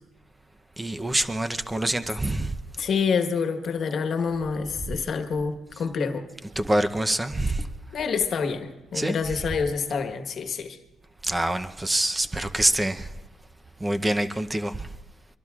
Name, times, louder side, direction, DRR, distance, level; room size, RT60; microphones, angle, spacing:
voice 1, 0.8-2.5 6.6-7.7 8.9-9.2 11.2-13.1 13.8-14.9, right 1 dB, 15° right, 0.7 m, -25 dB
voice 2, 2.8-6.2 7.9-10.8, left 5 dB, 60° left, 1.3 m, -27 dB
24.0 x 23.0 x 2.4 m
cardioid pair, 90°, 0 cm